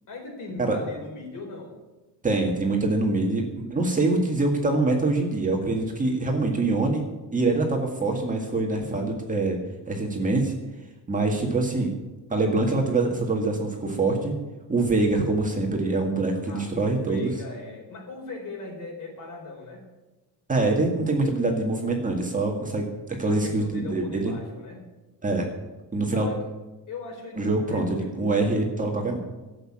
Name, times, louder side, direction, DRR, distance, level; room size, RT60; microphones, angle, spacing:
voice 1, 0.1-1.8 15.0-15.4 16.4-19.8 23.2-24.8 26.1-26.4 26.9-28.6, left 3 dB, 50° left, 1 dB, 4.6 m, -39 dB
voice 2, 2.2-7.0 7.3-9.6 9.9-10.5 11.1-11.9 12.3-14.4 14.7-17.3 20.5-24.3 25.2-25.5 25.9-26.3 27.4-29.2, right 2 dB, 20° right, 1 dB, 1.9 m, -24 dB
13.0 x 8.3 x 8.6 m, 1.1 s
cardioid pair, 150°, 40 cm